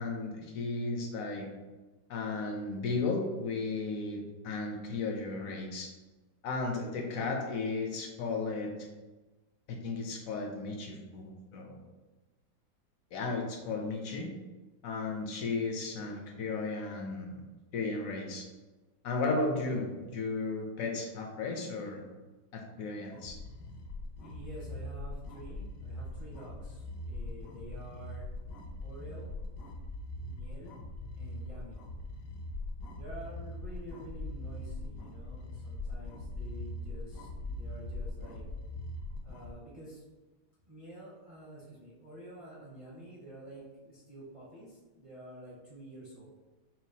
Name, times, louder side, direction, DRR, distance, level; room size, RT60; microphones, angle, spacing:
voice 1, 0.0-1.5 2.1-5.9 6.4-8.7 9.7-11.8 13.1-14.3 14.8-17.4 17.7-18.5 19.0-19.9 20.1-22.0 22.5-23.4, left 3 dB, 65° left, 2 dB, 0.9 m, -34 dB
sound 1, 23.1-39.5, left 2 dB, 80° left, 1.2 m, -41 dB
voice 2, 24.2-28.3 28.8-29.3 30.3-30.8 31.2-31.8 32.9-38.4 39.2-40.0 40.6-46.3, right 1 dB, 35° right, -6 dB, 0.6 m, -49 dB
5.7 x 2.4 x 2.7 m, 1.2 s
omnidirectional pair, 1.8 m